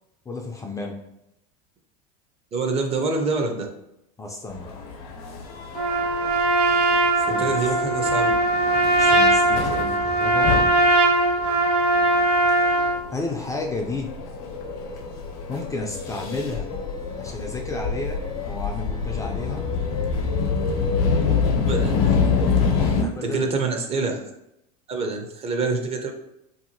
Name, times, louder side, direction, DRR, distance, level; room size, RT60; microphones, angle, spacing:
voice 1, 0.3-1.0 4.2-4.7 7.3-7.5 9.0-10.5 13.1-14.1 15.5-16.7 16.9-20.3 23.0-23.5, left 3 dB, 15° left, 1 dB, 0.4 m, -32 dB
voice 2, 2.5-3.7 7.2-8.3 21.7-22.0 22.8-24.2 24.9-26.1, right 3 dB, 30° right, 3 dB, 0.6 m, -26 dB
sound 1, 4.5-23.0, left 5 dB, 70° left, 0.7 m, -27 dB
Trumpet, 5.7-13.0, right 2 dB, 90° right, 0.6 m, -20 dB
2.7 x 2.7 x 2.6 m, 0.82 s
hypercardioid pair, 90°, 19 cm